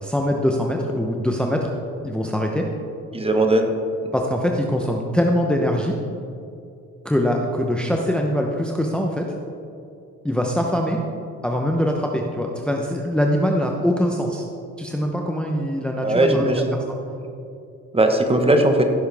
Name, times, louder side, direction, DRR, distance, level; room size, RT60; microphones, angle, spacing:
voice 1, 0.0-1.7 2.0-2.7 4.1-6.0 7.0-9.3 10.2-11.0 11.4-14.4 14.8-16.7, equal, 5° left, 1 dB, 0.8 m, -23 dB
voice 2, 3.1-3.7 16.0-16.8 17.9-18.8, right 1 dB, 20° right, 5 dB, 1.2 m, -18 dB
16.0 x 7.1 x 3.5 m, 2.6 s
cardioid pair, 90°, 30 cm